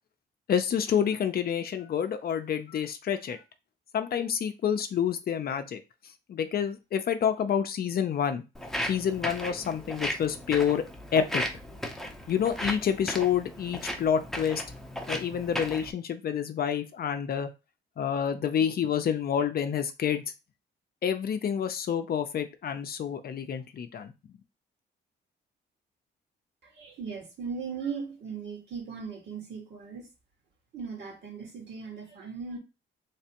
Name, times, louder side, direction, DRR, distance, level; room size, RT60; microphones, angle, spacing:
voice 1, 0.5-3.4 3.9-5.8 6.3-8.4 8.9-10.9 11.1-11.4 12.3-14.6 15.1-17.5 18.0-20.2 21.0-24.1, left 8 dB, 50° left, 0.5 m, -28 dB
Walk footsteps, 8.5-15.9, equal, ahead, 0.7 m, -36 dB
voice 2, 26.7-30.1 30.7-32.6, right 5 dB, 65° right, 1.8 m, -38 dB
3.3 x 3.3 x 2.9 m
cardioid pair, 90°, 20 cm